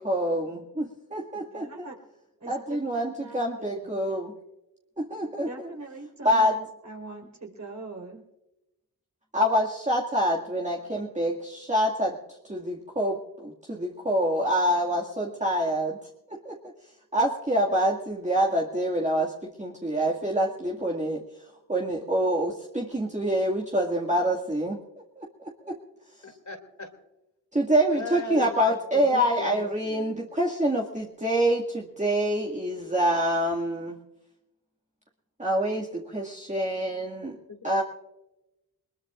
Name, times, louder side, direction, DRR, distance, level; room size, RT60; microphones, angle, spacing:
voice 1, 0.0-1.9 2.5-4.3 5.0-5.5 6.2-6.6 9.3-12.2 12.5-16.0 16.3-16.6 17.1-21.2 21.7-24.8 25.2-25.8 27.5-34.0 35.4-37.4 37.6-37.8, equal, 20° right, -3 dB, 2.2 m, -26 dB
voice 2, 1.3-1.9 2.4-2.6 2.9-4.0 5.5-8.2, right 2 dB, 45° right, 1 dB, 4.4 m, -43 dB
voice 3, 26.2-26.9 27.9-30.1 37.5-37.8, left 2 dB, 50° left, 4 dB, 2.9 m, -37 dB
21.0 x 20.5 x 2.5 m, 0.95 s
cardioid pair, 40°, 38 cm